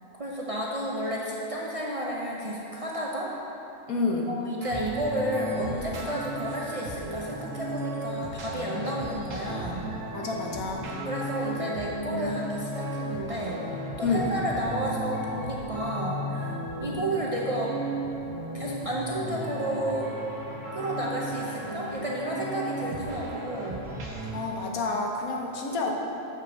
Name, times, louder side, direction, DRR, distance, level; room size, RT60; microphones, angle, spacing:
voice 1, 0.2-3.3 4.3-9.9 11.0-13.6 14.0-17.8 18.5-20.1 20.7-23.9 25.9-26.0, right 1 dB, 40° right, -4 dB, 0.5 m, -31 dB
voice 2, 3.9-4.3 10.1-10.8 14.0-14.4 24.3-26.0, left 3 dB, 90° left, 0 dB, 1.4 m, -29 dB
sound 1, 4.6-24.4, right 1 dB, 65° right, 1.3 m, -35 dB
6.6 x 6.2 x 5.9 m, 3.0 s
omnidirectional pair, 1.4 m